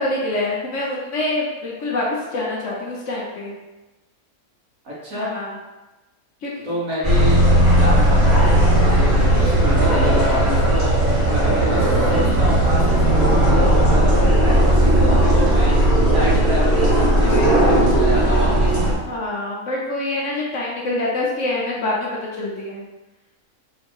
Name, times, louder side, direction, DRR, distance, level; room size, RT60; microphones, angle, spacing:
voice 1, 0.0-3.5 5.1-5.5 6.4-6.6 17.2-17.6 19.1-22.8, left 2 dB, 60° left, -3 dB, 1.1 m, -25 dB
voice 2, 4.8-5.3 6.6-15.9 16.1-18.8, left 1 dB, 65° right, -6 dB, 1.7 m, -28 dB
sound 1, 7.0-18.9, right 1 dB, 10° right, 1.2 m, -16 dB
3.9 x 2.8 x 4.4 m, 1.1 s
omnidirectional pair, 1.6 m